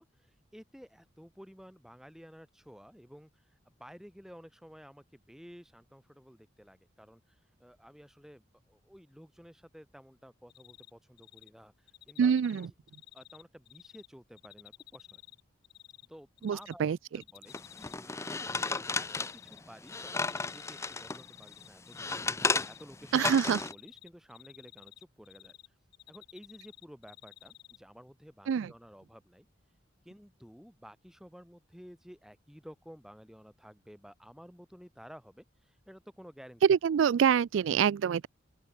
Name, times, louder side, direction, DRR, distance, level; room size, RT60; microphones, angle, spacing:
voice 1, 0.0-12.7 13.1-15.2 16.1-16.8 17.1-22.2 22.7-25.7 26.1-29.5 30.0-36.6, equal, ahead, 3.3 m, -53 dB
Cricket, 10.5-10.9 11.2-11.5 11.9-14.1 14.4-16.1 16.4-16.7 17.1-17.9 18.2-19.6 19.9-22.2 22.4-22.8 23.2-25.7 25.9-27.8, left 13 dB, 55° left, 1.1 m, -53 dB
voice 2, 12.2-12.7 16.4-17.0 23.1-23.6 28.5-28.7 36.7-38.3, right 7 dB, 70° right, 0.3 m, -26 dB
sound 1, 17.5-21.2 21.6-23.7, left 3 dB, 15° left, 0.6 m, -34 dB
open air
head